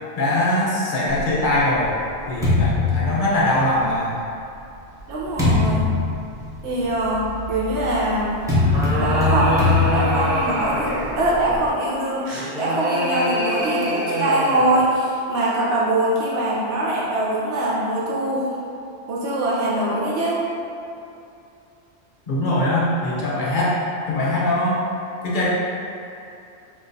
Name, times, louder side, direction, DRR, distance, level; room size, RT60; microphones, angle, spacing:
voice 1, 0.2-1.9 2.3-4.1 22.3-23.8 24.1-24.8 25.2-25.5, left 1 dB, 50° left, -6 dB, 0.7 m, -21 dB
sound 1, 1.2-3.9 4.6-11.7, left 3 dB, 5° right, 0.6 m, -23 dB
voice 2, 5.1-5.9 6.6-8.3 9.0-12.3 12.5-18.5 19.1-20.4, right 1 dB, 85° right, -6 dB, 0.9 m, -23 dB
sound 2, 8.4-11.2 12.2-14.8, equal, 50° right, 0.7 m, -25 dB
3.6 x 2.4 x 2.6 m, 2.6 s
omnidirectional pair, 1.1 m